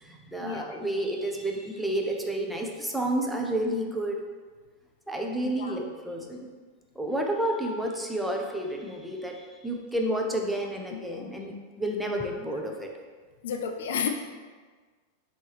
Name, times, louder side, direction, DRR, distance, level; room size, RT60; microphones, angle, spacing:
voice 1, 0.0-4.2 5.1-6.5 7.0-12.9, right 1 dB, ahead, 0 dB, 0.5 m, -30 dB
voice 2, 5.4-5.8 11.0-11.3 13.4-14.1, left 7 dB, 60° left, 5 dB, 0.3 m, -32 dB
5.3 x 2.8 x 3.2 m, 1.5 s
figure-of-eight pair, 90°, 0 cm